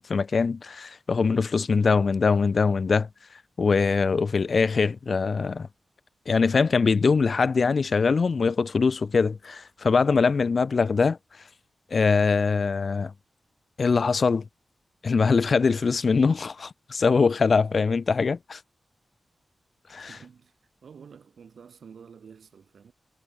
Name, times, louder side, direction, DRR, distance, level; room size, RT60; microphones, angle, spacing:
voice 1, 0.0-3.1 3.6-5.7 6.3-11.2 11.9-13.1 13.8-14.4 15.0-18.6 19.9-20.1, left 4 dB, 50° left, 0.5 m, -22 dB
voice 2, 20.1-20.5 20.8-22.9, right 6 dB, 75° right, 2.9 m, -49 dB
wide cardioid pair, 140°, 0 cm